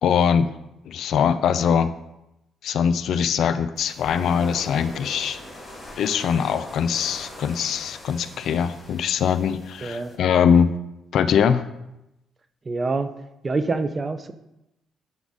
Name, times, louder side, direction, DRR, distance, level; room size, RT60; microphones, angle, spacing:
voice 1, 0.0-0.5 0.9-1.9 2.6-5.4 6.0-10.7 11.1-11.6, left 7 dB, 70° left, 12 dB, 0.3 m, -22 dB
sound 1, 3.8-10.2, left 1 dB, 10° left, 2.4 m, -41 dB
voice 2, 9.8-10.1 12.7-13.1 13.4-14.3, right 3 dB, 30° right, 10 dB, 0.4 m, -26 dB
7.0 x 3.9 x 3.6 m, 0.91 s
cardioid pair, 90°, 0 cm